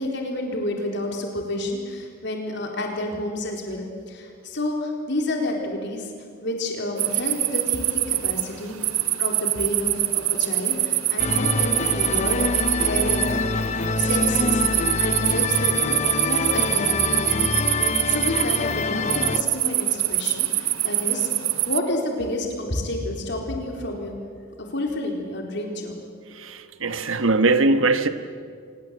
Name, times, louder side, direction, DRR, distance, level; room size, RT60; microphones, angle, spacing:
voice 1, 0.0-6.1 6.4-8.8 9.2-13.3 14.0-14.6 15.0-21.3 21.7-24.1 24.6-26.0, left 1 dB, 55° left, 1 dB, 4.1 m, -30 dB
sound 1, 7.0-21.8, right 15 dB, 90° right, 1.2 m, -24 dB
sound 2, 11.2-19.4, left 3 dB, 35° left, 0.8 m, -25 dB
voice 2, 26.4-28.1, right 3 dB, 70° right, 10 dB, 1.3 m, -21 dB
25.0 x 20.5 x 8.3 m, 2.1 s
head